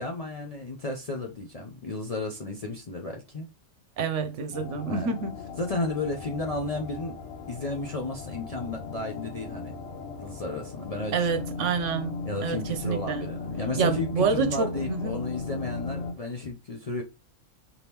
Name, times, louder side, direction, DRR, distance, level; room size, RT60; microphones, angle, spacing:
voice 1, 0.0-3.5 4.9-5.2 5.6-7.2 7.5-9.8 10.2-11.4 12.3-17.0, left 2 dB, 45° left, 0.5 m, -33 dB
voice 2, 4.0-5.3 11.1-12.1 12.4-13.3 13.8-15.1, right 5 dB, 70° right, 1.0 m, -27 dB
sound 1, 4.5-16.1, left 3 dB, 80° left, 1.3 m, -37 dB
4.3 x 3.5 x 2.9 m
omnidirectional pair, 1.3 m